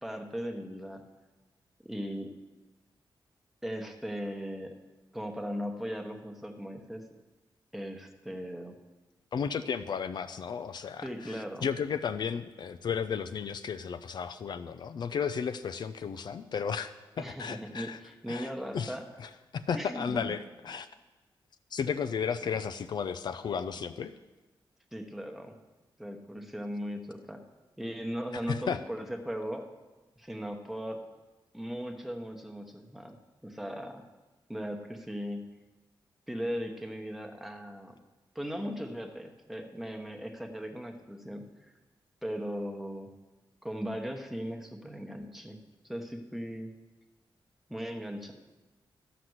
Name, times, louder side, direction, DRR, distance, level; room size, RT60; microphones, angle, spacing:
voice 1, 0.0-1.0 1.8-2.3 3.6-4.7 5.1-7.0 7.7-8.7 11.0-11.7 17.2-19.1 19.7-20.4 24.9-25.5 26.0-27.4 27.8-29.6 30.2-31.0 31.5-33.2 33.4-34.0 34.5-35.4 36.3-37.9 38.3-41.5 42.2-43.1 43.6-45.6 45.8-46.7 47.7-48.3, equal, 5° right, 3 dB, 1.0 m, -38 dB
voice 2, 9.3-18.0 18.3-18.9 19.2-20.4 20.6-20.9 21.7-24.1 28.5-28.8, left 6 dB, 60° left, 10 dB, 0.4 m, -34 dB
12.5 x 5.9 x 7.9 m, 1.2 s
wide cardioid pair, 140°, 8 cm